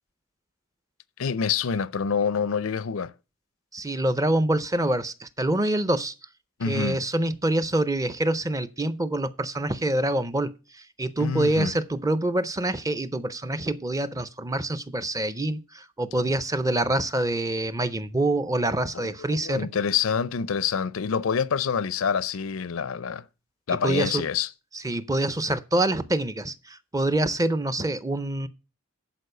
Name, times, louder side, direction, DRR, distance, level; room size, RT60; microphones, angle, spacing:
voice 1, 1.2-3.1 6.6-7.0 11.2-11.7 18.9-23.2 23.7-24.5, left 6 dB, 85° left, 0.5 m, -27 dB
voice 2, 3.7-6.1 6.7-19.7 23.8-24.2 24.8-28.5, right 1 dB, 15° right, 0.5 m, -26 dB
11.0 x 4.6 x 6.6 m
head